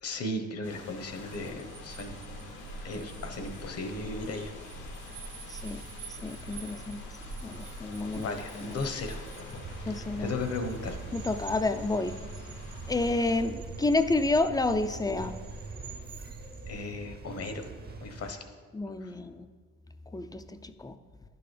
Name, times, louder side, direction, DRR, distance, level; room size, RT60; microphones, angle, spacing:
voice 1, 0.0-2.2 2.8-4.5 8.1-11.0 16.7-17.7 18.0-18.5 19.0-19.1, left 2 dB, 55° left, 6 dB, 1.1 m, -36 dB
sound 1, 0.6-13.4, left 3 dB, 80° left, 1.4 m, -48 dB
sound 2, 1.1-16.8, right 2 dB, 85° right, 1.2 m, -45 dB
voice 2, 5.5-7.1 7.4-8.3 8.6-8.8 9.8-10.3 11.1-12.2 12.9-15.4 18.7-19.5 20.1-21.0, left 2 dB, 15° left, 10 dB, 0.4 m, -30 dB
sound 3, 9.6-18.3, right 4 dB, 30° right, 0.7 m, -44 dB
11.0 x 6.9 x 3.3 m, 1.6 s
cardioid pair, 90°, 30 cm